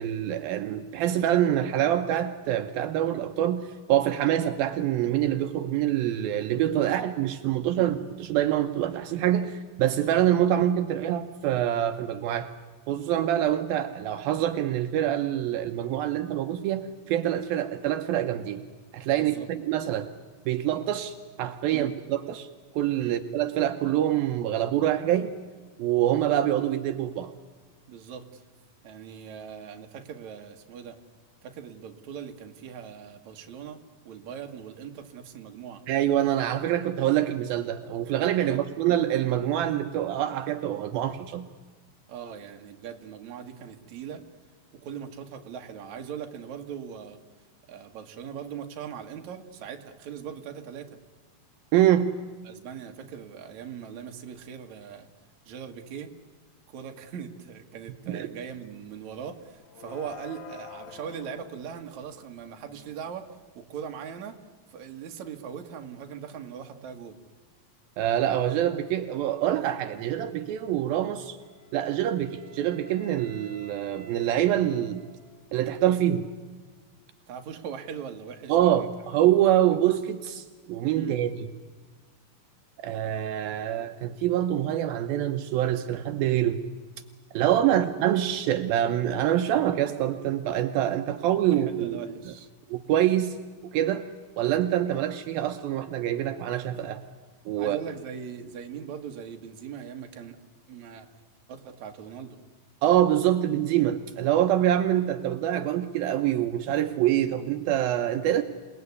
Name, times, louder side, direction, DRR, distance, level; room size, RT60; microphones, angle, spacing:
voice 1, 0.0-12.5 12.9-18.6 18.9-20.1 20.5-22.5 22.7-25.3 25.8-27.3 35.9-41.5 51.7-52.1 58.1-58.3 68.0-71.4 71.7-75.0 75.5-76.3 78.5-81.5 82.8-86.6 87.3-92.3 92.7-93.4 93.7-94.0 94.4-97.0 97.5-97.8 102.8-108.4, right 11 dB, 80° right, 7 dB, 2.7 m, -25 dB
voice 2, 19.1-19.5 21.7-21.9 23.0-23.2 27.9-28.5 28.8-31.0 31.4-35.8 38.4-38.6 42.1-44.2 44.8-47.2 47.7-51.0 52.4-55.1 55.4-56.1 56.7-63.3 63.5-64.4 64.7-67.2 77.3-78.9 80.9-81.2 87.7-87.8 91.5-92.5 97.6-100.4 100.7-101.1 101.5-102.4, right 8 dB, 55° right, 4 dB, 2.8 m, -40 dB
sound 1, 58.5-58.7 59.0-63.6, left 9 dB, 80° left, 3.1 m, -48 dB
Wind instrument woodwind instrument, 71.4-75.5, right 3 dB, 50° left, 7.9 m, -51 dB
28.5 x 19.0 x 9.7 m, 1.5 s
omnidirectional pair, 4.3 m